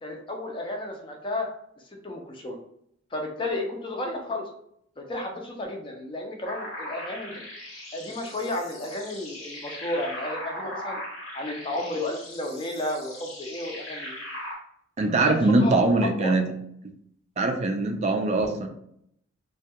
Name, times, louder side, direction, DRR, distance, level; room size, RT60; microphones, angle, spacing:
voice 1, 0.0-1.5 2.0-2.6 3.1-4.5 5.0-7.4 7.9-11.0 11.3-14.1 15.2-15.8 16.2-16.3, left 1 dB, 25° left, 2 dB, 0.5 m, -32 dB
sound 1, 6.5-14.5, left 1 dB, 85° left, 1.0 m, -39 dB
voice 2, 15.0-16.5 17.4-18.7, right 2 dB, 35° right, 4 dB, 0.3 m, -22 dB
2.2 x 2.2 x 2.7 m, 0.70 s
head